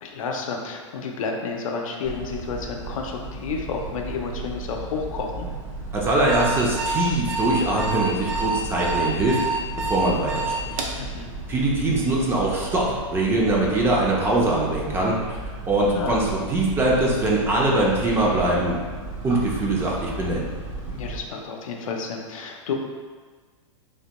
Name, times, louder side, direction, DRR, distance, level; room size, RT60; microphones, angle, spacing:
voice 1, 0.0-5.5 11.0-11.3 15.9-16.3 20.9-22.7, left 5 dB, 85° left, 1 dB, 0.5 m, -31 dB
sound 1, 2.0-21.2, right 3 dB, 90° right, 1.3 m, -35 dB
voice 2, 5.9-9.5 9.8-10.8 11.5-15.4 15.7-18.8 19.2-20.5, right 2 dB, 15° right, -3 dB, 0.4 m, -22 dB
Alarm, 6.3-11.0, right 3 dB, 75° right, 0.5 m, -27 dB
3.3 x 2.2 x 2.9 m, 1.5 s
hypercardioid pair, 140°, 17 cm